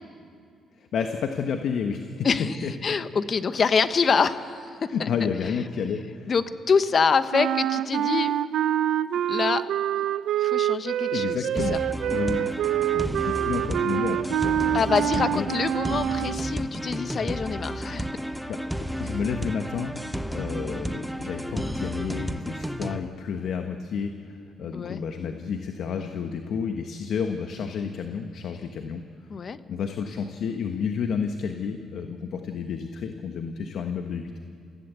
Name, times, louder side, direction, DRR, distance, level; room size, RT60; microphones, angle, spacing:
voice 1, 0.8-2.3 2.6-2.7 4.9-6.3 11.1-11.8 12.1-14.8 15.1-15.5 18.5-18.6 19.0-19.9 20.3-29.0 29.7-34.4, left 6 dB, 70° left, 6 dB, 1.2 m, -31 dB
voice 2, 2.2-2.6 2.8-5.1 6.3-8.3 9.3-9.6 10.4-11.4 11.7-11.8 14.7-18.1 24.7-25.0 29.3-29.6, left 5 dB, 45° left, 11 dB, 1.1 m, -25 dB
sound 1, 7.3-16.5, right 11 dB, 75° right, 0.5 m, -26 dB
sound 2, 11.6-23.0, right 1 dB, 5° right, 1.0 m, -32 dB
30.0 x 16.0 x 8.3 m, 2.3 s
cardioid pair, 90°, 0 cm